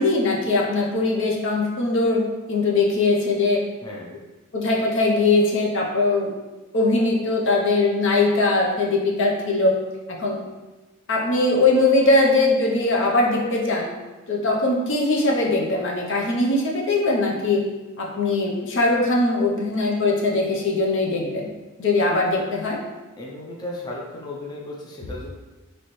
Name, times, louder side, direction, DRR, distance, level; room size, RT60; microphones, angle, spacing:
voice 1, 0.0-2.2 2.5-3.6 4.5-6.3 6.7-9.7 10.1-10.4 11.1-13.9 14.3-17.7 18.0-21.5 21.8-22.8, left 2 dB, 60° left, -1 dB, 0.7 m, -21 dB
voice 2, 3.8-4.2 22.2-22.5 23.2-25.3, left 1 dB, 20° left, -4 dB, 0.6 m, -35 dB
4.3 x 3.1 x 3.1 m, 1.1 s
head